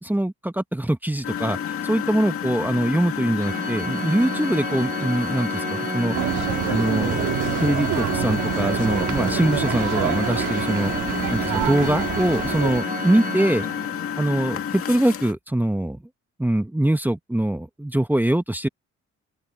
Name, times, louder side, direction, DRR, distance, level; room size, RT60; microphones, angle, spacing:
voice 1, 0.0-1.6 1.8-6.2 6.7-10.9 11.3-13.6 14.2-16.0 16.4-18.7, right 1 dB, 5° right, 1.1 m, -23 dB
Engine, 1.2-15.3, left 9 dB, 45° left, 2.3 m, -30 dB
Organ, 3.4-14.2, right 4 dB, 25° right, 1.3 m, -32 dB
sound 1, 6.1-12.8, right 13 dB, 80° right, 1.9 m, -27 dB
open air
cardioid pair, 90°, 30 cm